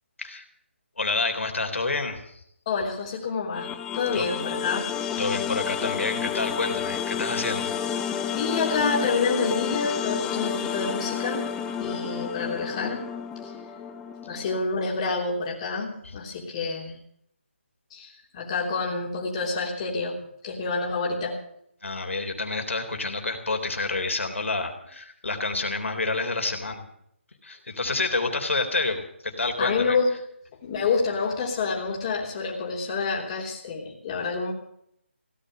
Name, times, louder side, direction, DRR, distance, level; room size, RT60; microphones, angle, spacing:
voice 1, 1.0-2.2 4.1-4.2 5.2-7.7 21.8-26.8 27.4-30.0, left 3 dB, 85° left, 5 dB, 3.5 m, -28 dB
voice 2, 2.6-4.9 8.3-11.4 11.8-13.0 13.4-13.5 14.2-17.0 17.9-20.2 20.4-21.4 29.6-30.1 30.6-34.5, left 4 dB, 25° left, -1 dB, 3.2 m, -28 dB
sound 1, 3.5-14.6, left 8 dB, 10° left, 0.7 m, -30 dB
17.0 x 10.0 x 7.8 m, 0.71 s
figure-of-eight pair, 165°, 7 cm